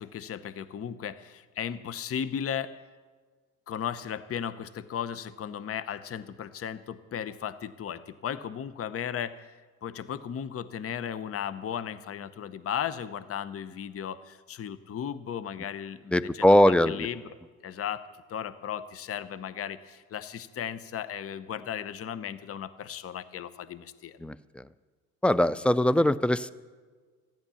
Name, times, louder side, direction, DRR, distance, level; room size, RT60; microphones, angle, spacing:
voice 1, 0.0-2.7 3.7-9.5 9.8-17.2 17.6-18.0 18.3-24.2, left 8 dB, 35° left, 14 dB, 0.8 m, -36 dB
voice 2, 16.1-17.1 24.2-24.6 25.2-26.5, left 1 dB, 5° left, 17 dB, 0.4 m, -22 dB
14.0 x 10.5 x 7.0 m, 1.5 s
hypercardioid pair, 70°, 39 cm